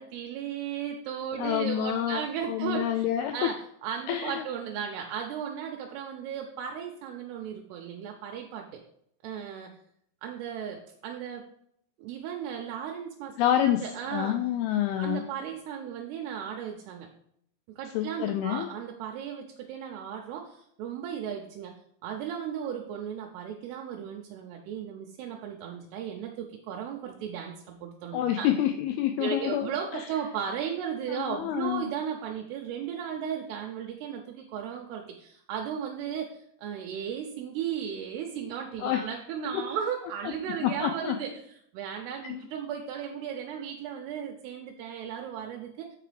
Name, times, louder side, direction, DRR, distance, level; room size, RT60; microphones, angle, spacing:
voice 1, 0.0-3.1 3.3-8.8 9.2-9.7 10.2-11.5 12.0-13.3 13.8-14.4 15.0-17.1 17.7-21.8 22.0-28.5 29.2-41.4 41.7-46.0, right 8 dB, 80° right, 2 dB, 2.6 m, -35 dB
voice 2, 1.4-3.5 4.1-4.4 13.4-13.9 14.1-15.3 17.9-18.7 28.1-30.1 31.1-31.9 38.8-39.0 39.5-39.6 40.3-40.4 40.6-41.2 42.3-42.4, left 11 dB, 85° left, 6 dB, 2.2 m, -28 dB
7.9 x 4.8 x 5.0 m, 0.71 s
omnidirectional pair, 4.9 m